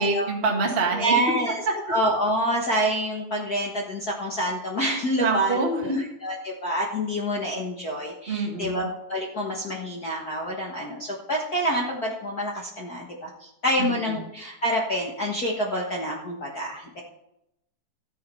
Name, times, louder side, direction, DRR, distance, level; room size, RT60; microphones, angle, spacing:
voice 1, 0.0-1.2 5.2-6.0 8.3-8.9 13.8-14.2, right 3 dB, 30° right, 0 dB, 1.2 m, -26 dB
voice 2, 1.0-1.6 1.9-8.8 9.1-17.0, equal, 75° left, -2 dB, 0.8 m, -27 dB
14.0 x 7.8 x 5.6 m, 0.84 s
omnidirectional pair, 4.3 m